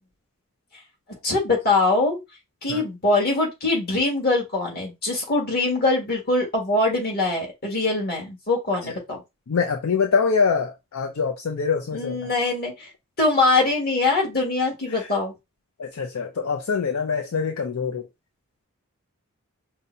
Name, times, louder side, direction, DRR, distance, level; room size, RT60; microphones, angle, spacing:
voice 1, 1.2-2.2 2.6-9.2 11.9-12.9 13.2-15.3, left 2 dB, 50° left, 1.8 m, -23 dB
voice 2, 9.5-12.2 14.9-15.1 15.8-18.1, left 5 dB, 80° left, 0.5 m, -24 dB
5.3 x 2.2 x 2.7 m
head